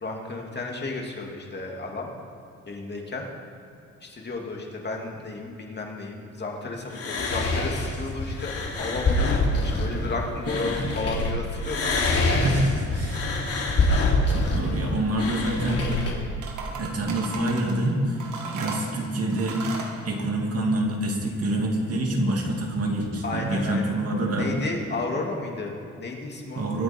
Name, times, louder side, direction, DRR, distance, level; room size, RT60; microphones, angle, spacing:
voice 1, 0.0-2.1 2.7-3.3 4.0-8.5 8.8-11.8 12.3-12.4 14.6-15.0 23.2-23.9 24.3-26.8, left 3 dB, 35° left, 0 dB, 2.7 m, -33 dB
sound 1, 6.9-11.3 11.6-16.1, left 2 dB, 50° left, 3.3 m, -25 dB
voice 2, 12.4-13.3 14.3-15.9 16.8-19.6 20.0-24.5 26.6-26.8, right 1 dB, 50° right, 1 dB, 2.7 m, -26 dB
sound 2, 15.2-16.1 16.4-17.8 18.2-19.9, right 4 dB, 80° right, 2.3 m, -36 dB
22.5 x 8.6 x 4.6 m, 2.7 s
cardioid pair, 90°, 30 cm